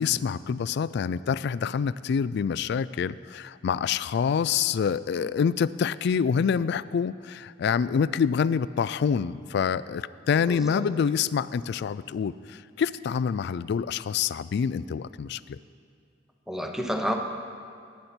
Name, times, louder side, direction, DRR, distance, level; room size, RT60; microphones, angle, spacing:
voice 1, 0.0-15.6, left 6 dB, 60° left, 17 dB, 0.3 m, -26 dB
voice 2, 10.4-11.0 16.5-17.1, equal, 5° right, 3 dB, 0.9 m, -31 dB
18.5 x 9.4 x 4.4 m, 2.3 s
head